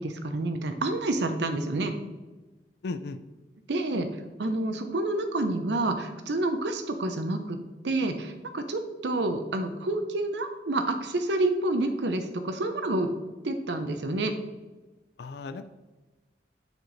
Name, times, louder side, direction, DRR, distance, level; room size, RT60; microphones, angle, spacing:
voice 1, 0.0-1.9 3.7-4.1 4.4-7.6 7.8-13.1 13.4-14.3, right 2 dB, 75° right, 8 dB, 0.7 m, -28 dB
voice 2, 2.8-3.2 15.2-15.7, left 3 dB, 65° left, 11 dB, 0.4 m, -35 dB
6.3 x 5.0 x 4.0 m, 1.2 s
head